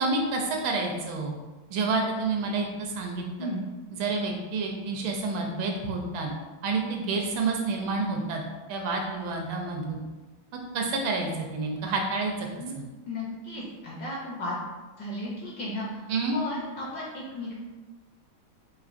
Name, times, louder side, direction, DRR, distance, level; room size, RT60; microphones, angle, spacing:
voice 1, 0.0-1.3 1.7-3.2 4.0-6.3 6.6-8.4 8.7-10.0 10.7-12.5 12.7-12.8 16.1-16.4, right 3 dB, 75° right, 2 dB, 1.3 m, -29 dB
voice 2, 13.1-14.5 15.0-16.0 16.3-17.5, left 1 dB, 70° left, -4 dB, 1.0 m, -35 dB
4.9 x 2.8 x 2.5 m, 1.2 s
omnidirectional pair, 2.4 m